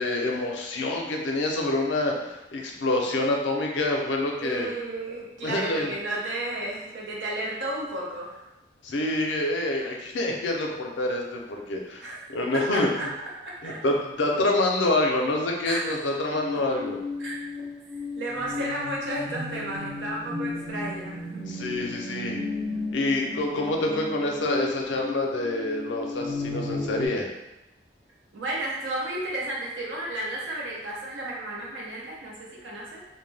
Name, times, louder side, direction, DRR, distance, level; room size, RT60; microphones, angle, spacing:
voice 1, 0.0-4.7 5.4-5.9 8.8-13.1 13.6-17.0 21.4-22.4 22.9-27.3, left 2 dB, 85° left, 1 dB, 0.5 m, -27 dB
voice 2, 4.4-8.4 12.0-12.2 12.5-13.1 13.4-13.8 15.6-16.0 17.2-17.4 18.1-21.4 28.3-33.0, right 1 dB, 90° right, -4 dB, 0.7 m, -33 dB
sound 1, 16.3-27.1, left 3 dB, ahead, 0.3 m, -34 dB
2.1 x 2.1 x 3.2 m, 0.94 s
head